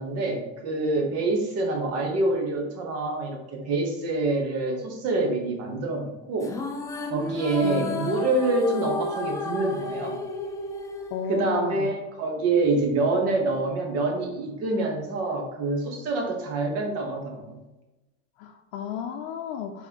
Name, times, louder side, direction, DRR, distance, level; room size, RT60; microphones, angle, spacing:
voice 1, 0.0-6.5 7.1-10.2 11.3-17.6, right 2 dB, 50° right, 2 dB, 1.2 m, -26 dB
sound 1, 6.4-11.9, left 2 dB, 10° left, 0.3 m, -33 dB
voice 2, 7.6-8.2 11.1-11.9 18.4-19.9, left 7 dB, 75° left, 2 dB, 0.5 m, -33 dB
4.1 x 4.0 x 2.9 m, 1.0 s
supercardioid pair, 135°, 32 cm